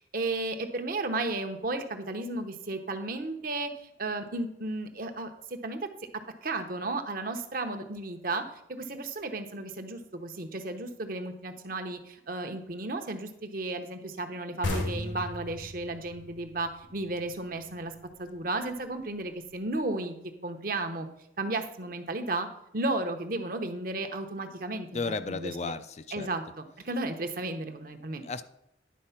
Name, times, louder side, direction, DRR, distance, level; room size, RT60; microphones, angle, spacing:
voice 1, 0.0-3.7 4.0-5.9 6.4-8.4 8.7-17.9 18.2-20.2 20.4-21.1 21.4-22.5 22.7-25.7 26.1-28.2, right 2 dB, 50° right, 7 dB, 0.8 m, -34 dB
sound 1, 14.6-18.0, left 1 dB, 80° left, 1.5 m, -35 dB
voice 2, 24.9-26.3 28.2-28.4, left 4 dB, 35° left, 13 dB, 0.4 m, -34 dB
10.5 x 4.3 x 5.7 m, 0.79 s
head